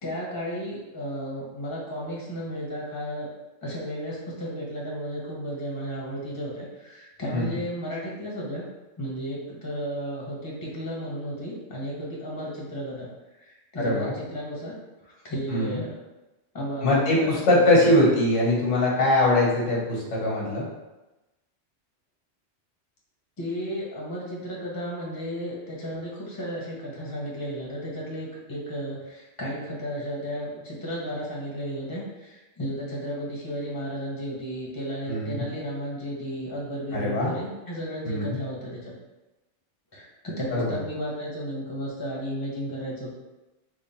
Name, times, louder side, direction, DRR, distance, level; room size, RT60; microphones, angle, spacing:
voice 1, 0.0-3.3 3.6-8.6 9.0-13.1 13.4-14.8 15.0-16.0 16.5-17.9 23.4-38.9 39.9-43.2, equal, 20° left, -4 dB, 0.8 m, -34 dB
voice 2, 13.8-14.1 15.5-15.8 16.8-20.7 35.1-35.5 36.9-37.3 38.0-38.4 40.5-40.8, left 1 dB, 80° left, -3 dB, 1.3 m, -22 dB
3.6 x 2.2 x 4.1 m, 1.0 s
omnidirectional pair, 1.2 m